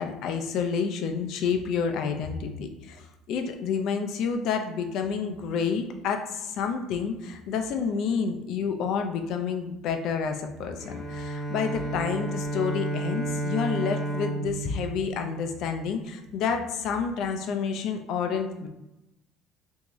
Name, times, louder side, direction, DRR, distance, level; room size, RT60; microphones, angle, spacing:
voice 1, 0.0-18.7, left 6 dB, 60° left, 5 dB, 0.5 m, -29 dB
Bowed string instrument, 10.8-16.0, right 2 dB, 40° left, 0.8 m, -32 dB
3.4 x 2.7 x 3.0 m, 0.93 s
cardioid pair, 130°, 0 cm